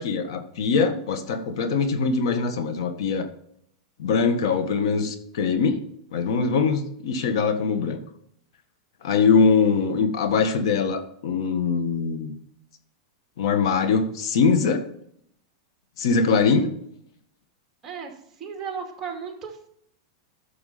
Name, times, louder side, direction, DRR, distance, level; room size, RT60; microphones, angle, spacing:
voice 1, 0.0-3.3 4.0-5.8 6.1-8.0 9.0-12.3 13.4-14.9 16.0-16.7, left 5 dB, 70° left, 9 dB, 1.5 m, -22 dB
voice 2, 17.8-19.7, right 6 dB, 20° right, 2 dB, 2.3 m, -35 dB
11.5 x 6.9 x 4.2 m, 0.68 s
supercardioid pair, 145°, 3 cm